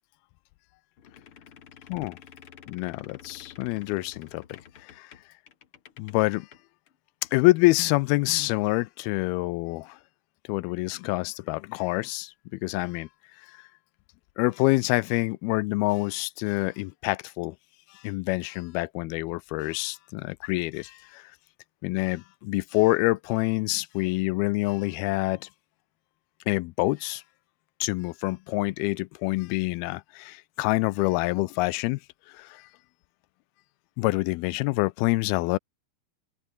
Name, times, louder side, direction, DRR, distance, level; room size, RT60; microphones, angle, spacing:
sound 1, 1.0-6.6 6.9-7.0 7.2-7.4, left 8 dB, 45° left, 1.9 m, -50 dB
voice 1, 2.7-5.1 6.0-6.5 7.3-10.0 10.5-12.3 12.6-13.1 14.4-17.6 17.9-21.3 21.8-25.5 26.5-27.2 27.8-32.0 32.3-32.7 34.0-35.6, left 22 dB, 80° left, 2.4 m, -26 dB
open air
omnidirectional pair, 4.5 m